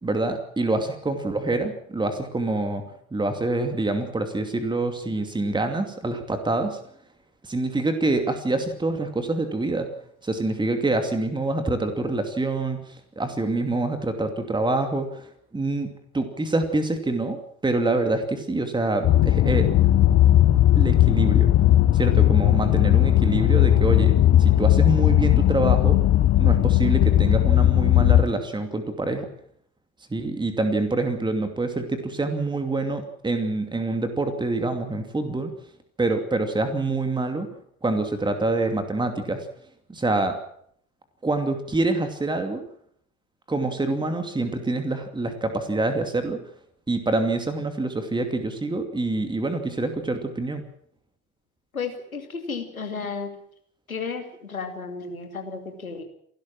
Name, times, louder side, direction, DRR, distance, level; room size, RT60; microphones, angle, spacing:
voice 1, 0.0-2.8 3.1-6.8 7.4-9.9 10.2-12.8 13.2-15.9 16.1-19.7 20.7-21.5 21.9-26.0 26.4-29.3 30.1-35.5 36.0-37.5 37.8-39.5 39.9-40.4 41.2-42.6 43.5-46.4 46.9-50.6, right 2 dB, 10° right, 7 dB, 2.6 m, -26 dB
sound 1, 19.0-28.2, left 13 dB, 35° left, 1.0 m, -17 dB
voice 2, 51.7-53.3 53.9-56.0, left 5 dB, 85° left, 5 dB, 2.7 m, -33 dB
29.0 x 12.0 x 7.5 m, 0.67 s
figure-of-eight pair, 70°, 41 cm